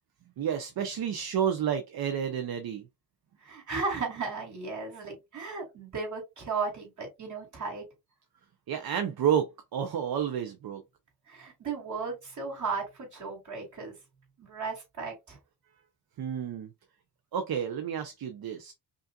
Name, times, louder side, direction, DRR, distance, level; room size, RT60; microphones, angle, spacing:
voice 1, 0.4-2.9 8.7-10.8 16.2-16.7 17.3-18.7, right 8 dB, 65° right, 0.7 m, -30 dB
voice 2, 3.4-7.8 11.3-14.0 14.4-15.4, right 4 dB, 45° right, 2.7 m, -35 dB
5.3 x 2.6 x 2.3 m
wide cardioid pair, 150°, 40 cm